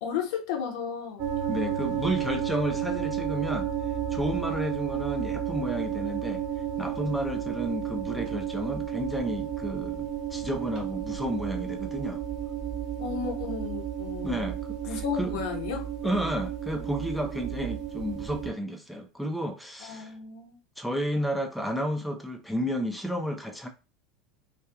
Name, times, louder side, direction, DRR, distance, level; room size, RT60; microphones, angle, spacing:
voice 1, 0.0-1.2 13.0-14.4 14.8-15.9 19.8-20.6, left 7 dB, 60° left, 0.6 m, -33 dB
sound 1, 1.2-18.5, right 9 dB, 40° right, 0.7 m, -32 dB
voice 2, 1.5-3.7 4.1-6.5 6.8-12.2 14.2-15.4 16.0-20.1 20.8-23.7, equal, ahead, 0.4 m, -32 dB
2.6 x 2.3 x 2.4 m
figure-of-eight pair, 75°, 2 cm